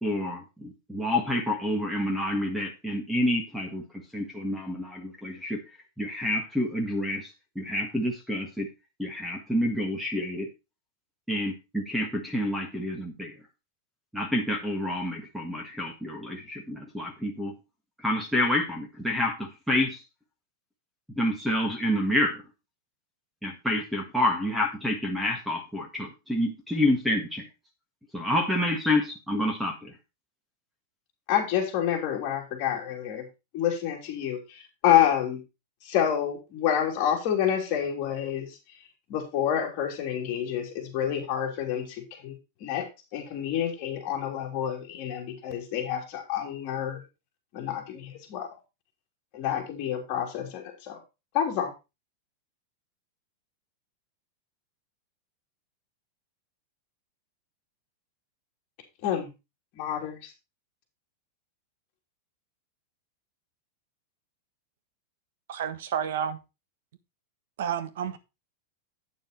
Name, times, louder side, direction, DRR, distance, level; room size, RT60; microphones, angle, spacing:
voice 1, 0.0-3.8 4.1-5.6 6.0-7.3 7.5-8.7 9.0-10.5 11.3-13.3 14.1-17.5 18.0-20.0 21.2-22.4 23.4-27.5 28.1-29.9, left 1 dB, ahead, 1.6 m, -28 dB
voice 2, 31.3-33.3 33.5-35.4 35.8-38.5 39.1-42.3 42.6-42.9 43.1-47.0 47.5-48.5 49.3-51.0 51.3-51.7 59.0-59.3 59.7-60.2, left 10 dB, 35° left, 3.2 m, -28 dB
voice 3, 65.5-66.4 67.6-68.2, right 8 dB, 70° right, 1.3 m, -30 dB
9.1 x 6.9 x 4.4 m
supercardioid pair, 165°, 0 cm